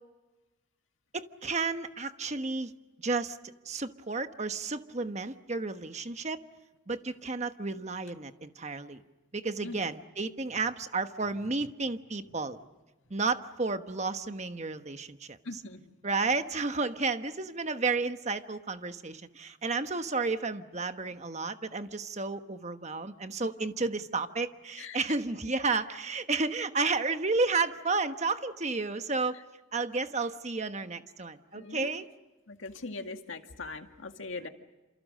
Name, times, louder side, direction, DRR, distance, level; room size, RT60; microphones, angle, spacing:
voice 1, 1.1-2.7 3.0-3.4 3.6-6.4 6.9-9.0 9.3-12.6 13.1-15.4 16.0-29.4 29.7-32.0, right 3 dB, 35° right, 9 dB, 1.2 m, -32 dB
voice 2, 15.4-15.9 24.8-25.0 31.5-31.9 32.5-34.5, left 3 dB, 80° left, 6 dB, 2.0 m, -41 dB
29.0 x 28.0 x 6.5 m, 1.1 s
head